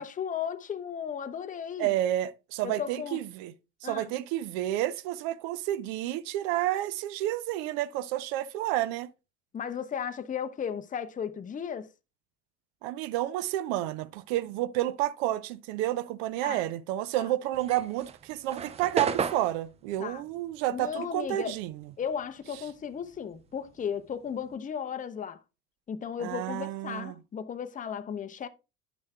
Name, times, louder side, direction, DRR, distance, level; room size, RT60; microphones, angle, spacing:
voice 1, 0.0-1.9 2.6-3.2 3.8-4.1 9.5-11.9 16.4-16.6 17.2-17.3 20.0-20.2 20.7-21.5 22.0-25.4 25.9-28.5, left 7 dB, 20° left, 0.7 m, -35 dB
voice 2, 1.8-3.5 3.8-9.1 12.8-21.8 26.2-27.1, right 14 dB, 60° right, 0.7 m, -30 dB
sound 1, 17.5-22.3 22.5-24.5, right 6 dB, 15° right, 0.4 m, -35 dB
10.5 x 6.3 x 2.3 m
hypercardioid pair, 75°, 44 cm